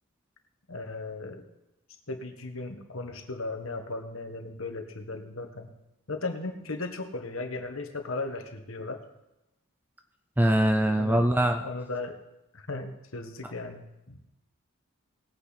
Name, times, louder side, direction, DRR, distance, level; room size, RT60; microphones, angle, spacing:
voice 1, 0.7-1.4 2.1-5.7 6.1-9.0 11.0-11.2 11.6-12.2 12.5-14.3, left 3 dB, 65° left, 5 dB, 1.6 m, -36 dB
voice 2, 10.4-11.6, right 1 dB, 10° right, 5 dB, 0.6 m, -22 dB
19.5 x 8.9 x 4.2 m, 0.92 s
head